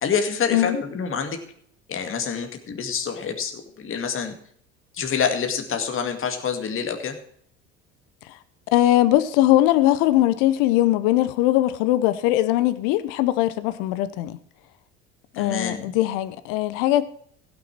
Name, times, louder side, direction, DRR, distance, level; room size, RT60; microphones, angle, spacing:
voice 1, 0.0-1.4 1.9-4.3 4.9-7.2 15.3-16.0, left 6 dB, 35° left, 2.2 m, -27 dB
voice 2, 8.7-14.4 15.4-17.1, left 14 dB, 65° left, 0.9 m, -20 dB
16.0 x 6.5 x 6.1 m
hypercardioid pair, 75°, 34 cm